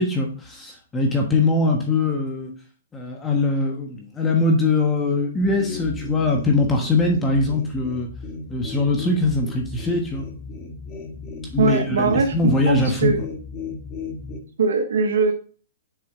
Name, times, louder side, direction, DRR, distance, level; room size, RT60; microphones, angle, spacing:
voice 1, 0.0-2.5 2.9-8.1 8.5-10.3 11.5-13.1, left 2 dB, 10° left, 1 dB, 1.2 m, -22 dB
sound 1, 5.4-14.4, left 4 dB, 25° left, 1.5 m, -35 dB
voice 2, 11.6-13.2 14.6-15.3, right 4 dB, 80° right, 4 dB, 1.1 m, -21 dB
6.9 x 4.8 x 3.6 m, 0.40 s
hypercardioid pair, 155°, 0 cm